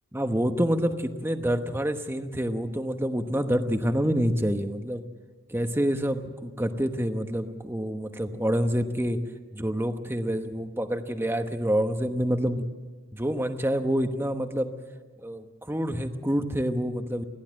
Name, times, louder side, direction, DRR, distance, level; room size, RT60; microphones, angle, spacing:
voice 1, 0.1-5.0 5.5-9.2 9.5-12.7 13.1-14.7 15.2-17.2, equal, 10° right, 7 dB, 1.0 m, -27 dB
30.0 x 11.5 x 7.6 m, 1.3 s
head